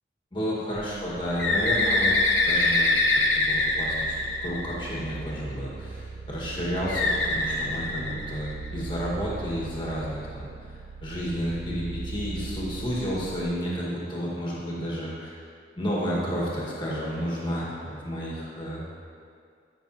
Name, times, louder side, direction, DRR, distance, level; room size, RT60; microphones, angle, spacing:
voice 1, 0.3-4.1 4.4-15.4 15.8-18.8, equal, 25° left, -6 dB, 1.7 m, -31 dB
sound 1, 0.8-13.5, right 4 dB, 45° right, 0.3 m, -39 dB
Bird, 1.4-5.1 6.9-8.7, left 2 dB, 80° left, 0.9 m, -24 dB
12.5 x 5.9 x 3.0 m, 2.3 s
head